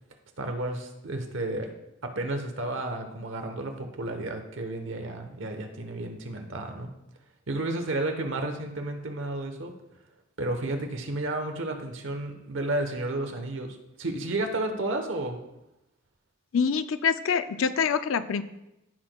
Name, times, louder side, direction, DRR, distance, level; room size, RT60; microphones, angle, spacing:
voice 1, 0.4-1.8 2.0-6.9 7.5-9.7 10.4-15.4, right 2 dB, 70° right, 5 dB, 1.0 m, -32 dB
voice 2, 16.5-18.4, left 6 dB, 80° left, 12 dB, 0.5 m, -25 dB
15.0 x 6.0 x 2.3 m, 0.91 s
head